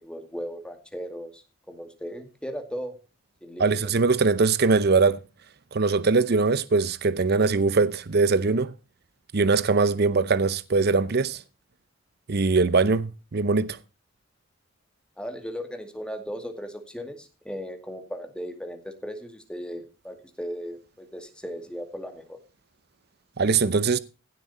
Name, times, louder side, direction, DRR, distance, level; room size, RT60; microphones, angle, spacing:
voice 1, 0.0-1.4 1.7-3.0 3.4-3.8 15.2-22.4, equal, 5° left, 2.2 m, -37 dB
voice 2, 3.6-5.2 5.7-8.7 9.3-11.4 12.3-13.8 23.4-24.0, right 4 dB, 55° right, 0.7 m, -22 dB
16.5 x 7.7 x 4.2 m
head